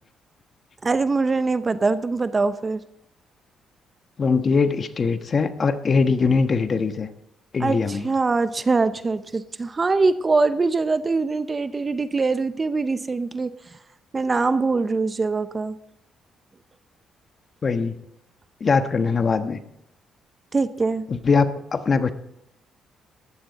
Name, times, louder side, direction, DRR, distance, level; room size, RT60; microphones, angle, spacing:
voice 1, 0.8-2.8 7.6-13.5 14.1-15.8 20.5-21.1, right 3 dB, 30° right, 13 dB, 0.7 m, -23 dB
voice 2, 4.2-7.1 7.5-8.1 17.6-17.9 18.6-19.6 21.1-22.1, left 4 dB, 40° left, 9 dB, 1.2 m, -21 dB
15.5 x 11.5 x 4.1 m, 0.79 s
cardioid pair, 90°, 0 cm